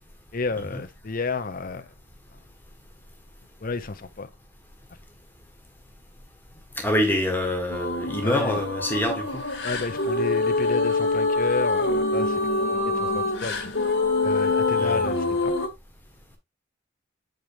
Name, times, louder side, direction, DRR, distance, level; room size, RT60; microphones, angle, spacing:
voice 1, 0.3-1.9 3.6-4.3 8.2-8.6 9.6-12.5 12.8-13.7 14.2-15.6, left 3 dB, 45° left, 0.8 m, -31 dB
voice 2, 6.8-9.4 14.7-15.1, left 1 dB, 10° left, 1.5 m, -26 dB
sound 1, 7.7-15.7, left 3 dB, 60° left, 1.7 m, -25 dB
7.7 x 5.2 x 2.9 m
head